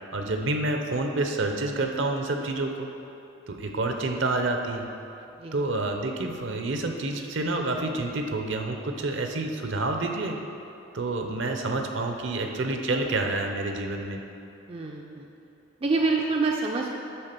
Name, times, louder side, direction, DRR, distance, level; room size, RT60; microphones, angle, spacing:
voice 1, 0.1-2.9 3.5-4.9 5.5-10.4 10.9-14.2, right 2 dB, 65° right, 4 dB, 0.7 m, -28 dB
voice 2, 14.7-15.3 15.8-16.9, right 3 dB, 25° right, 0 dB, 0.4 m, -26 dB
10.0 x 3.7 x 6.7 m, 2.8 s
head